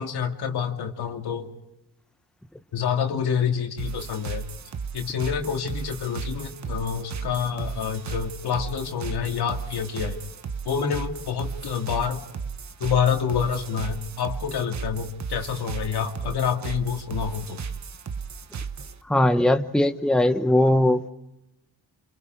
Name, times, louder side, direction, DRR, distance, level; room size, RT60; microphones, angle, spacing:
voice 1, 0.0-1.5 2.7-4.5 4.9-10.2 10.6-12.2 12.8-17.7, left 7 dB, 85° left, 3 dB, 2.5 m, -27 dB
sound 1, 3.8-19.0, right 6 dB, 45° right, 1.1 m, -35 dB
voice 2, 19.1-21.0, left 1 dB, ahead, 8 dB, 1.1 m, -20 dB
30.0 x 27.0 x 4.7 m, 0.89 s
cardioid pair, 85°, 38 cm